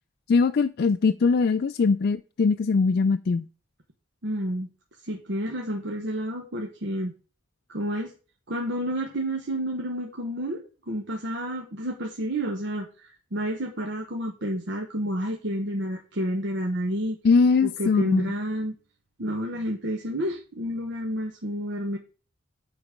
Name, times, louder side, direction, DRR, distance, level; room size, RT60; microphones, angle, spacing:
voice 1, 0.3-3.4 17.2-18.3, left 4 dB, 55° left, 0.4 m, -21 dB
voice 2, 4.2-4.7 5.0-7.1 7.7-8.1 8.5-17.2 17.6-18.7 19.2-22.0, equal, 65° right, 1.1 m, -30 dB
9.6 x 4.0 x 5.1 m
head